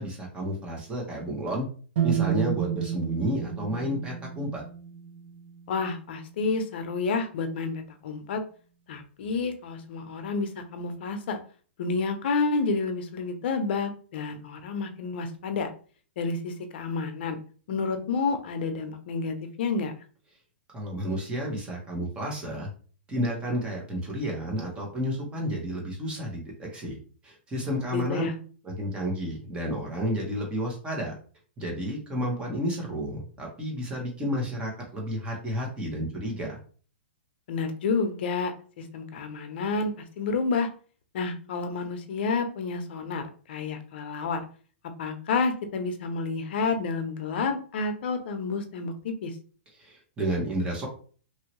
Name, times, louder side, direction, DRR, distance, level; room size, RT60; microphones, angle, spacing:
voice 1, 0.0-1.7 2.0-4.6 20.7-22.7 23.1-27.0 27.2-28.3 28.6-31.1 31.6-36.6 49.8-50.9, equal, 15° right, -1 dB, 1.1 m, -31 dB
sound 1, 2.0-5.9, right 9 dB, 65° right, 0.7 m, -30 dB
voice 2, 5.7-8.4 8.9-11.4 11.8-15.7 16.2-17.4 17.7-19.9 27.9-28.3 37.5-40.7 41.1-44.4 45.0-49.4, left 4 dB, 60° left, 7 dB, 0.7 m, -30 dB
3.0 x 2.7 x 3.0 m, 0.42 s
hypercardioid pair, 140°, 6 cm